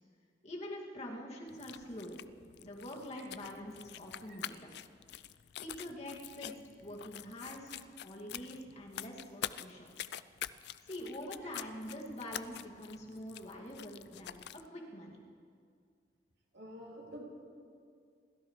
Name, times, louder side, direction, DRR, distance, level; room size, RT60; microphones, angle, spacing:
voice 1, 0.4-2.2 2.6-4.7 5.6-9.9 10.8-15.2, left 1 dB, 40° left, -3 dB, 2.4 m, -45 dB
sound 1, 1.5-14.7, left 11 dB, 65° left, 0.4 m, -47 dB
voice 2, 16.5-17.2, equal, 70° right, -3 dB, 2.9 m, -47 dB
28.5 x 13.5 x 3.3 m, 2.2 s
head